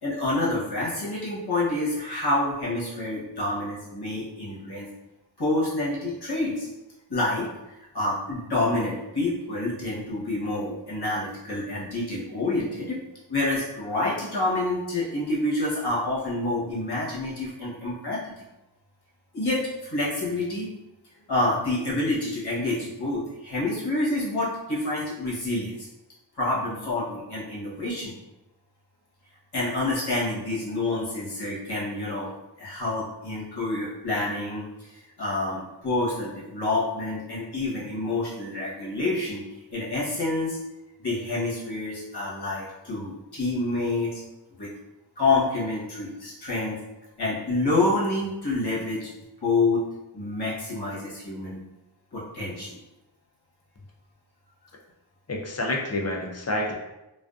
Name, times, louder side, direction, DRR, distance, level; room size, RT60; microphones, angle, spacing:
voice 1, 0.0-4.9 5.4-6.7 7.1-13.0 13.3-18.4 19.3-20.7 21.3-25.9 26.4-28.1 29.5-32.3 32.6-39.4 39.7-40.6 41.0-44.2 44.6-44.7 45.2-46.8 47.2-49.1 49.4-49.9 50.1-51.6 52.1-52.8, left 2 dB, 55° left, -7 dB, 1.0 m, -28 dB
voice 2, 55.3-56.7, left 1 dB, 35° left, 0 dB, 0.5 m, -28 dB
2.4 x 2.4 x 2.3 m, 0.98 s
wide cardioid pair, 55°, 46 cm